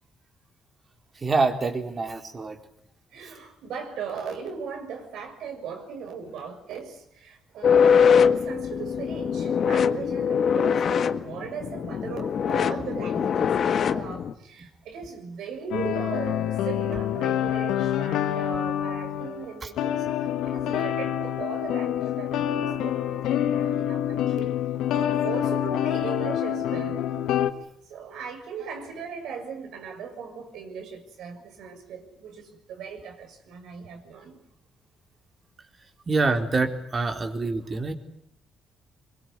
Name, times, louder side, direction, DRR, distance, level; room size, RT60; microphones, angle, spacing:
voice 1, 1.2-2.6 19.6-19.7 36.1-37.9, right 3 dB, 35° right, 4.2 m, -26 dB
voice 2, 3.1-24.5 24.9-27.0 27.9-34.4, right 6 dB, 80° right, 6.7 m, -38 dB
sound 1, 7.6-14.3, left 7 dB, 60° left, 1.7 m, -22 dB
sound 2, 15.7-19.5 19.8-27.5, left 10 dB, 85° left, 1.8 m, -27 dB
23.5 x 23.5 x 9.7 m
cardioid pair, 90°, 0 cm